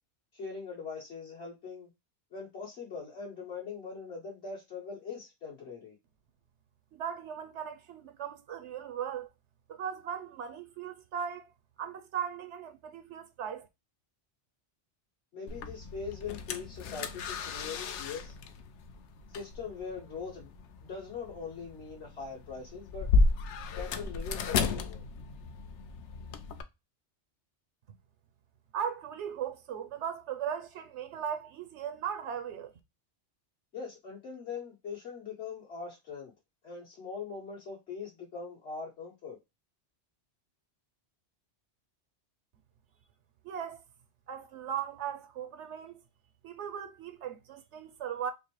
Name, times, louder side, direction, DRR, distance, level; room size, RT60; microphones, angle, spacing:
voice 1, 0.3-1.9 2.3-6.0 15.3-18.3 19.3-20.5 20.8-23.1 23.7-25.1 33.7-36.3 36.6-39.4, left 5 dB, 70° left, 2.4 m, -41 dB
voice 2, 6.9-9.3 9.7-11.5 11.8-13.7 28.7-32.7 43.4-43.8 44.3-46.0 46.4-48.3, right 8 dB, 90° right, 1.0 m, -38 dB
sound 1, 15.5-26.6, left 3 dB, 85° left, 0.9 m, -33 dB
5.1 x 2.1 x 3.0 m
omnidirectional pair, 1.2 m